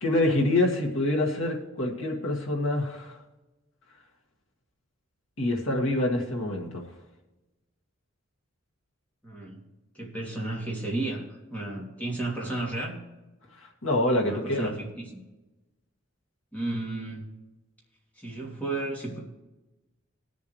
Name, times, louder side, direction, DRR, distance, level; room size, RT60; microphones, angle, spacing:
voice 1, 0.0-3.2 5.4-6.8 13.6-14.7, left 1 dB, 80° left, 0 dB, 2.0 m, -26 dB
voice 2, 9.2-9.6 9.9-13.0 14.2-15.1 16.5-17.3 18.2-19.2, right 2 dB, 5° left, -3 dB, 2.8 m, -33 dB
19.5 x 7.2 x 3.2 m, 1.1 s
head